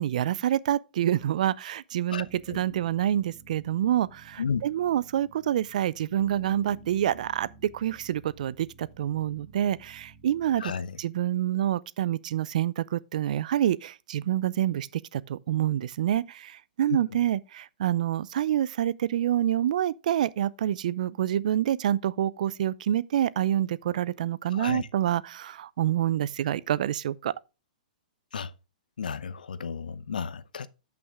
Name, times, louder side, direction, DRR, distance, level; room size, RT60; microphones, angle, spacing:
voice 1, 0.0-10.7 11.0-14.9 15.1-27.3, right 11 dB, 60° right, 0.5 m, -27 dB
voice 2, 2.1-2.6 4.4-4.6 10.6-11.0 16.9-17.2 24.5-24.9 28.3-28.5 29.0-30.7, left 6 dB, 85° left, 0.8 m, -33 dB
sound 1, 2.1-10.6, right 4 dB, 30° right, 3.0 m, -53 dB
11.5 x 5.9 x 3.6 m
hypercardioid pair, 135°, 5 cm